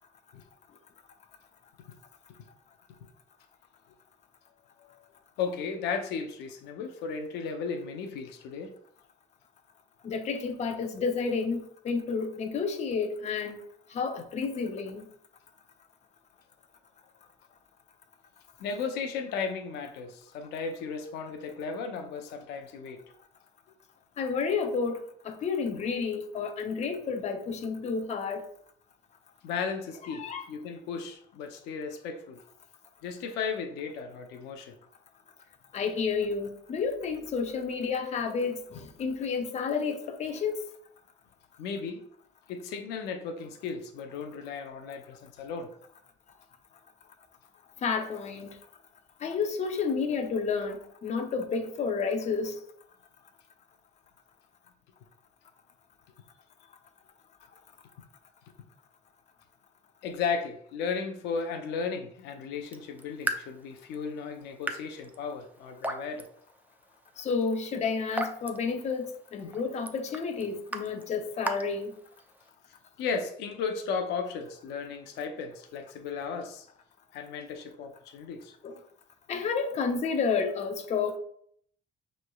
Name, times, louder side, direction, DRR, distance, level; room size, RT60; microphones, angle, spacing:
voice 1, 5.4-8.7 18.6-23.0 29.4-32.4 33.0-34.7 41.6-42.0 42.5-45.7 60.0-66.3 73.0-76.7 77.1-78.5, left 5 dB, 85° left, 0.6 m, -35 dB
voice 2, 10.0-13.6 13.9-15.0 24.2-28.4 30.1-30.4 35.7-40.6 47.8-48.5 49.2-52.6 67.2-71.9 78.6-78.8 79.3-81.2, left 5 dB, 40° left, 0.6 m, -30 dB
Raindrop / Drip, 62.6-72.5, right 2 dB, 10° right, 0.4 m, -40 dB
6.2 x 3.1 x 2.3 m
cardioid pair, 110°, 17 cm